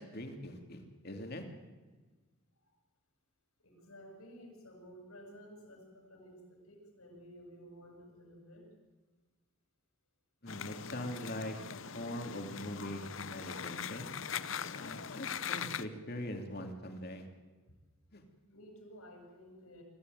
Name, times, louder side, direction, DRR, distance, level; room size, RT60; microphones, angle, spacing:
voice 1, 0.0-1.4 10.4-11.6 11.9-14.1 14.7-17.3 18.1-18.2, left 1 dB, 45° left, 4 dB, 3.0 m, -42 dB
voice 2, 3.6-8.7 18.5-19.8, equal, 80° left, 2 dB, 8.0 m, -54 dB
sound 1, 10.5-15.8, left 7 dB, 60° left, 0.8 m, -41 dB
24.5 x 15.5 x 9.3 m, 1.3 s
head